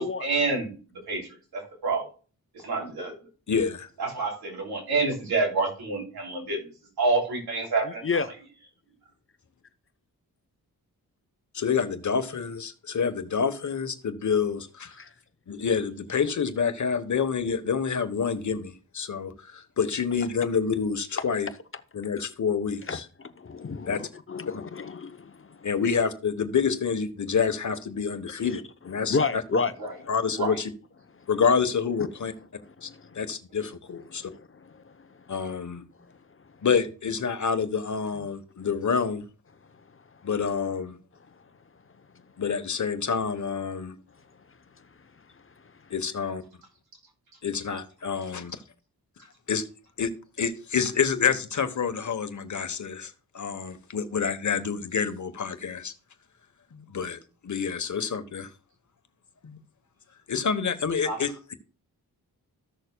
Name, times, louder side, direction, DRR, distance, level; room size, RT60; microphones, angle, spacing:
voice 1, 0.0-2.1 2.6-3.1 4.0-6.7 7.0-8.2 29.8-29.9 30.3-30.6 61.0-61.2, right 3 dB, 85° right, 3.1 m, -28 dB
voice 2, 3.5-3.9 11.5-14.9 15.5-21.5 21.9-23.0 23.9-24.0 25.6-28.6 28.8-29.4 30.1-30.7 31.3-32.3 32.8-32.9 33.1-34.2 35.3-35.8 36.6-39.2 40.2-41.0 42.4-43.9 45.9-46.4 47.4-48.6 49.5-49.6 50.0-50.1 50.4-55.9 56.7-57.2 57.4-58.5 59.4-59.6 60.3-61.5, left 6 dB, 50° left, 1.1 m, -27 dB
voice 3, 22.9-25.7 28.4-28.6 29.0-30.2 32.0-32.1 32.9-33.2 34.2-34.7, left 4 dB, 35° left, 0.8 m, -31 dB
14.5 x 6.5 x 2.2 m
cardioid pair, 65°, 37 cm